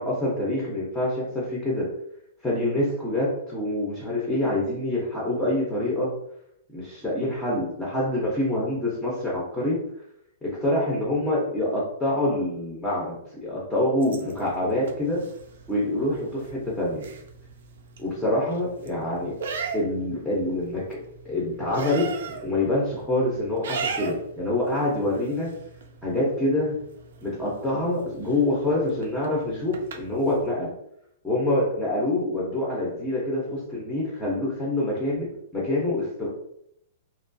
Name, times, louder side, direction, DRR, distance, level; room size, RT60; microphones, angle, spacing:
voice 1, 0.0-1.9 2.4-6.2 6.7-9.8 10.4-15.2 15.7-17.1 18.0-19.4 19.7-25.5 26.0-26.8 27.2-30.7 31.2-36.3, left 1 dB, 5° left, -6 dB, 0.5 m, -26 dB
sound 1, 14.0-30.5, right 5 dB, 70° right, 0.4 m, -39 dB
2.8 x 2.2 x 2.5 m, 0.73 s
supercardioid pair, 170°, 0 cm